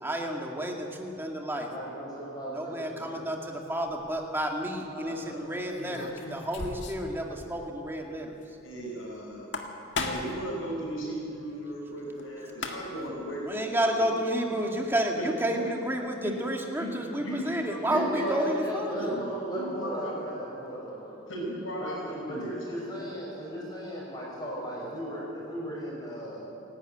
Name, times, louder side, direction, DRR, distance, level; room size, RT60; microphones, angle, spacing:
voice 1, 0.0-1.7 2.5-8.3 13.5-19.2, right 1 dB, 10° right, 1 dB, 2.0 m, -31 dB
voice 2, 1.6-3.1 4.9-5.5 6.2-6.3 12.5-12.6 17.4-21.2 21.8-26.5, equal, 20° left, -4 dB, 6.1 m, -37 dB
sound 1, 3.9-4.2 5.7-7.1 7.4-7.5 7.8-7.9 9.3-10.4 12.2-12.3 12.5-13.1, left 3 dB, 60° left, 2.0 m, -35 dB
voice 3, 8.6-9.6 10.0-14.2 15.2-15.7 16.2-16.3 16.7-17.5 17.8-18.4 18.9-20.1 21.3-23.0 23.5-23.6 25.6-25.7, right 1 dB, 80° left, -5 dB, 4.9 m, -36 dB
28.5 x 12.0 x 9.2 m, 2.9 s
head